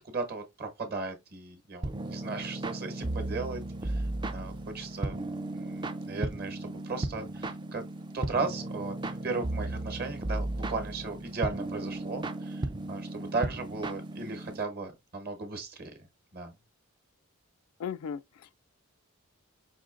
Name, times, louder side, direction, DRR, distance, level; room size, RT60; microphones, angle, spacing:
voice 1, 0.0-5.2 5.5-7.8 8.1-16.0 16.3-16.5, right 4 dB, 45° right, 1.0 m, -36 dB
sound 1, 1.8-14.6, right 2 dB, 20° right, 0.3 m, -35 dB
voice 2, 17.8-18.6, left 7 dB, 80° left, 0.3 m, -37 dB
5.1 x 2.8 x 2.4 m
head